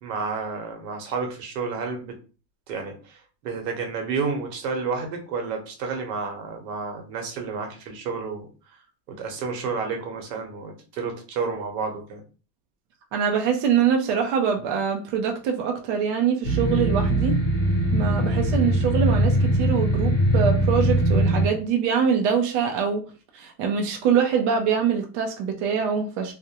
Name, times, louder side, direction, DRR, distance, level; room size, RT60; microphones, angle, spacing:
voice 1, 0.0-2.1 2.7-8.5 9.1-12.2, right 4 dB, 80° right, 1.0 m, -30 dB
voice 2, 13.1-17.4 17.9-23.0 23.3-26.3, right 7 dB, 45° right, 0.4 m, -24 dB
sound 1, 16.4-21.5, right 1 dB, 20° left, 0.7 m, -21 dB
2.3 x 2.1 x 2.8 m
supercardioid pair, 160°, 46 cm